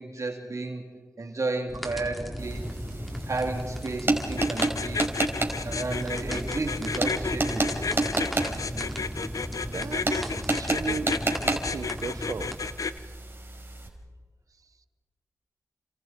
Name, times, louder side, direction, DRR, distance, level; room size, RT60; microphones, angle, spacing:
voice 1, 0.0-2.7 3.3-5.1 5.6-7.8, right 3 dB, 65° right, 2 dB, 3.6 m, -33 dB
sound 1, 1.7-12.5, equal, ahead, 4.2 m, -36 dB
sound 2, 2.4-13.9, right 2 dB, 40° right, 5.0 m, -31 dB
sound 3, 4.4-13.0, left 5 dB, 75° left, 0.8 m, -32 dB
voice 2, 9.7-11.2 11.4-12.8, right 5 dB, 80° right, 13 dB, 1.0 m, -36 dB
30.0 x 27.0 x 4.7 m, 1.5 s
cardioid pair, 40°, 6 cm